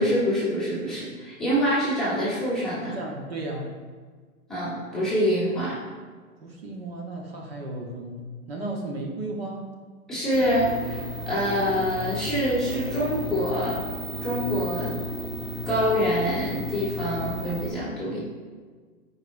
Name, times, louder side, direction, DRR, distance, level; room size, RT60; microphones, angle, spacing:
voice 1, 0.0-2.9 4.5-5.8 10.1-13.8 14.2-15.0 15.6-18.2, equal, ahead, -13 dB, 1.2 m, -25 dB
voice 2, 2.8-3.7 6.4-8.2 8.5-9.6, right 2 dB, 40° right, -1 dB, 1.2 m, -34 dB
sound 1, 10.3-17.7, left 1 dB, 20° right, 1.0 m, -34 dB
13.5 x 4.9 x 2.6 m, 1.5 s
hypercardioid pair, 165°, 45 cm